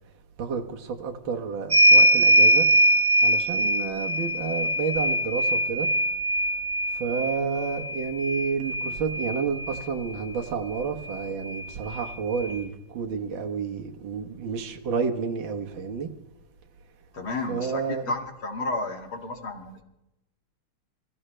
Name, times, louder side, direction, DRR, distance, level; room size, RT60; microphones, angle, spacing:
voice 1, 0.4-2.7 3.2-5.9 6.9-16.1 17.5-18.1, right 6 dB, 65° right, 2.1 m, -30 dB
sound 1, 1.7-9.8 11.1-11.2 11.5-12.6, right 1 dB, 35° right, 1.8 m, -22 dB
voice 2, 17.1-19.8, left 3 dB, 70° left, 2.9 m, -32 dB
26.5 x 15.5 x 3.3 m
omnidirectional pair, 2.3 m